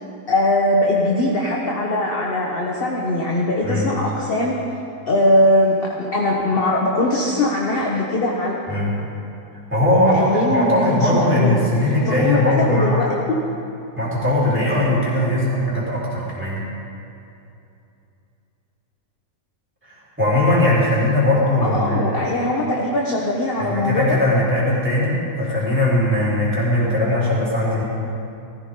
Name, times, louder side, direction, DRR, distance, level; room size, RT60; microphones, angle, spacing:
voice 1, 0.3-4.5 5.1-8.6 10.0-11.6 12.0-13.4 21.6-24.2, left 1 dB, 35° left, -2 dB, 1.3 m, -20 dB
voice 2, 9.7-13.1 14.0-16.6 19.8-22.3 23.6-27.8, left 1 dB, 5° right, -8 dB, 4.0 m, -19 dB
17.0 x 14.5 x 3.9 m, 2.7 s
omnidirectional pair, 1.9 m